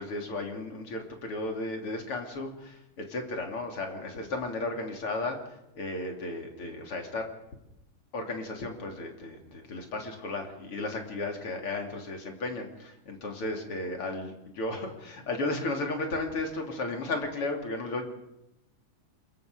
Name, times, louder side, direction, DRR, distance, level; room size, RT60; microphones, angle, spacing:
voice 1, 0.0-5.4 5.8-7.3 8.1-18.0, left 2 dB, 40° left, 2 dB, 3.8 m, -34 dB
27.0 x 22.5 x 5.2 m, 0.87 s
omnidirectional pair, 3.8 m